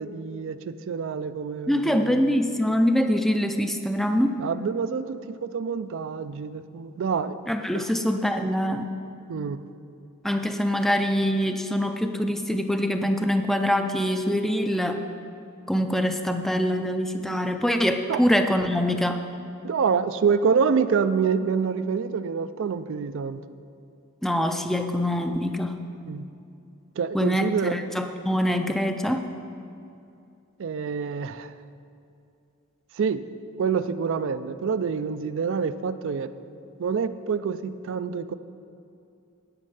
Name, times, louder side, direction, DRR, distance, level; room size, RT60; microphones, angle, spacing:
voice 1, 0.0-2.2 4.4-7.4 7.7-7.9 9.3-9.6 18.1-18.2 19.6-23.4 26.1-26.3 27.0-27.7 30.6-31.5 33.0-33.2 33.6-36.3 36.8-38.3, right 6 dB, 60° right, 11 dB, 0.4 m, -27 dB
voice 2, 1.7-4.4 7.5-8.9 10.2-15.0 15.7-19.2 24.2-25.8 27.1-29.2, equal, ahead, 6 dB, 0.4 m, -24 dB
9.8 x 8.4 x 5.5 m, 2.5 s
head